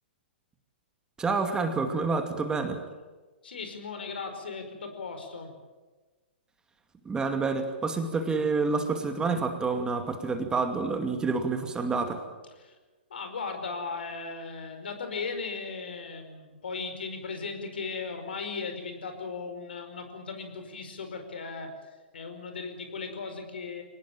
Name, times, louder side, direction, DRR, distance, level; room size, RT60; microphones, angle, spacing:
voice 1, 1.2-2.8 7.0-12.2, right 4 dB, 15° right, 6 dB, 2.4 m, -28 dB
voice 2, 3.4-5.5 12.6-12.8 13.1-21.7 22.1-23.8, left 4 dB, 70° left, 7 dB, 5.1 m, -37 dB
24.0 x 19.5 x 8.9 m, 1.3 s
figure-of-eight pair, 115°, 6 cm